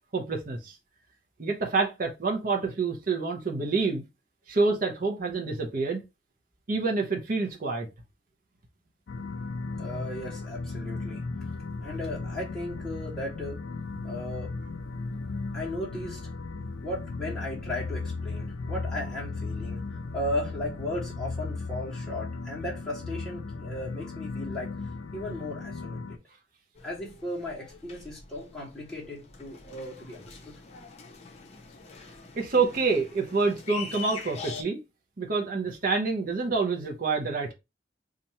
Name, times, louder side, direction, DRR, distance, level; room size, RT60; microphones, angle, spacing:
voice 1, 0.1-0.8 1.4-4.0 4.5-6.0 6.7-7.9 32.3-34.8 35.2-37.5, right 4 dB, 50° right, 0.7 m, -27 dB
sound 1, 9.1-26.2, left 3 dB, 75° left, 0.4 m, -36 dB
voice 2, 9.8-11.2 11.8-13.6 14.0-14.5 15.5-16.2 16.8-19.8 20.1-24.7 25.1-26.0 26.8-30.5, left 1 dB, 5° left, 1.3 m, -36 dB
sound 2, 26.8-34.6, left 5 dB, 35° left, 0.7 m, -44 dB
2.8 x 2.5 x 4.2 m
head